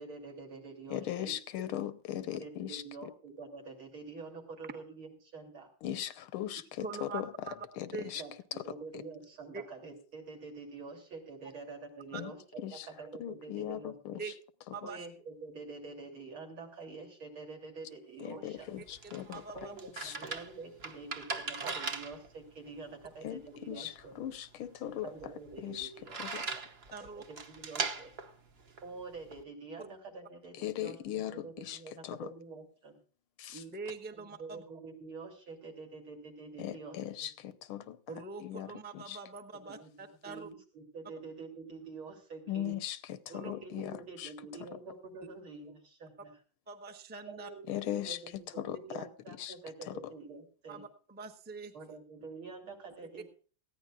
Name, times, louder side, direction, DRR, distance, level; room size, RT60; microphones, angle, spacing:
voice 1, 0.0-1.3 2.1-5.7 8.1-14.2 14.8-18.8 19.5-24.2 24.8-26.6 27.0-28.1 28.8-33.0 34.4-37.3 39.6-39.9 40.3-42.8 43.3-46.3 47.2-50.8 51.7-53.3, right 4 dB, 80° right, 1 dB, 3.9 m, -47 dB
voice 2, 0.9-2.8 5.8-7.3 7.8-8.2 12.1-12.3 12.6-12.9 13.2-14.2 18.2-19.4 20.0-20.2 23.2-25.1 25.6-25.9 26.2-26.4 30.6-32.3 33.4-33.6 36.6-38.0 38.4-39.2 42.5-44.3 47.7-49.5 49.9-50.0, left 12 dB, 90° left, 13 dB, 1.7 m, -39 dB
voice 3, 6.8-7.6 7.9-8.1 9.5-9.6 12.1-12.2 14.2-14.3 14.7-15.1 18.8-19.7 26.9-27.2 29.8-29.9 33.5-34.6 38.1-40.5 43.3-43.5 46.7-47.5 50.7-52.0, right 4 dB, 10° right, 5 dB, 0.7 m, -44 dB
sound 1, 18.6-29.4, right 4 dB, 45° right, 0.9 m, -41 dB
19.5 x 15.0 x 2.4 m, 0.39 s
omnidirectional pair, 2.3 m